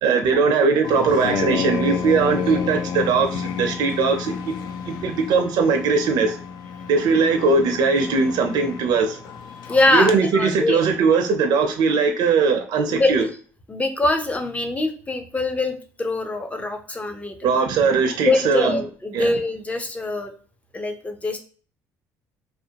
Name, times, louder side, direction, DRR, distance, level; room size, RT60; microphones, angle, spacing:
voice 1, 0.0-4.5 4.9-6.4 6.9-9.2 9.9-13.3 17.4-18.8 19.1-19.3, right 4 dB, 65° right, 0.4 m, -20 dB
sound 1, 0.8-10.2, left 7 dB, 65° left, 0.4 m, -30 dB
voice 2, 9.7-10.8 12.9-13.3 13.7-17.3 18.3-20.3 20.7-21.4, left 2 dB, 20° left, 0.5 m, -23 dB
2.5 x 2.0 x 2.8 m
supercardioid pair, 85°, 8 cm